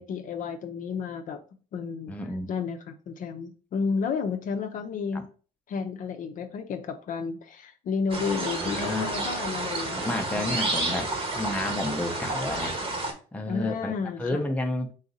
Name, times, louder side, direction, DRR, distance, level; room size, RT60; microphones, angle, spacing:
voice 1, 0.0-1.4 1.7-2.1 2.5-5.2 5.7-10.6 13.5-14.4, left 5 dB, 50° left, 0.6 m, -32 dB
voice 2, 2.1-2.5 5.1-5.2 8.6-9.1 10.0-12.8 13.3-14.9, left 1 dB, 10° left, 0.6 m, -31 dB
sound 1, 8.1-13.1, right 2 dB, 35° right, 1.0 m, -30 dB
3.9 x 2.6 x 3.9 m
cardioid pair, 110°, 17 cm